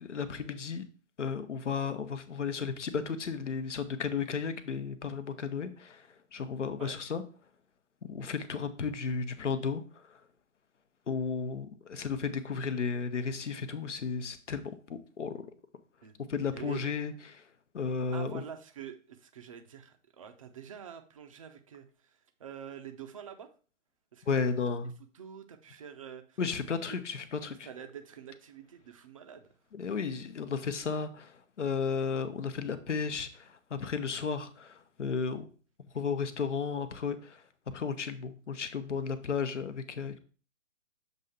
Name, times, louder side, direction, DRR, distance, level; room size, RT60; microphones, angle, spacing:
voice 1, 0.0-0.8 1.2-6.0 6.3-7.2 8.1-9.8 11.1-15.4 16.3-17.4 17.7-18.4 24.3-24.9 26.4-27.7 29.7-35.5 35.9-37.4 37.7-40.2, left 5 dB, 65° left, 11 dB, 0.9 m, -34 dB
voice 2, 16.5-16.9 18.1-21.9 22.4-23.5 24.1-24.3 25.1-26.4 26.9-27.0 27.6-29.5, right 8 dB, 25° right, 6 dB, 0.6 m, -46 dB
7.2 x 2.7 x 5.6 m, 0.40 s
figure-of-eight pair, 135°, 39 cm